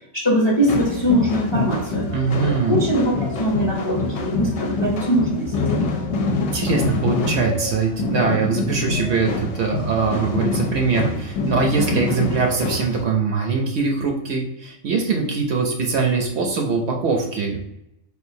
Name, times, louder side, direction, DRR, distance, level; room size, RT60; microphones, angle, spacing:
voice 1, 0.1-2.0 2.4-5.9, equal, 30° left, -4 dB, 0.6 m, -21 dB
sound 1, 0.6-13.0, left 3 dB, 70° left, 0.8 m, -26 dB
voice 2, 2.1-2.8 6.5-17.6, right 4 dB, 65° right, 1 dB, 0.7 m, -22 dB
3.6 x 2.4 x 2.6 m, 0.84 s
omnidirectional pair, 1.3 m